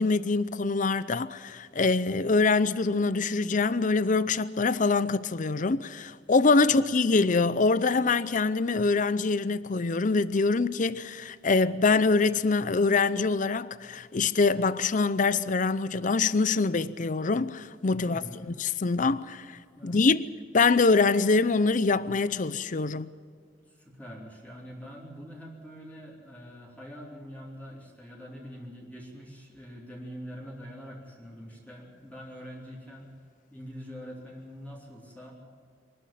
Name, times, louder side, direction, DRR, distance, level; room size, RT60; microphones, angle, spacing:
voice 1, 0.0-20.2 20.5-23.1, left 4 dB, 45° left, 0.6 m, -24 dB
voice 2, 18.0-18.5 19.8-20.0 23.6-33.1 33.5-35.3, equal, 10° left, 3.8 m, -44 dB
25.0 x 12.5 x 9.1 m
head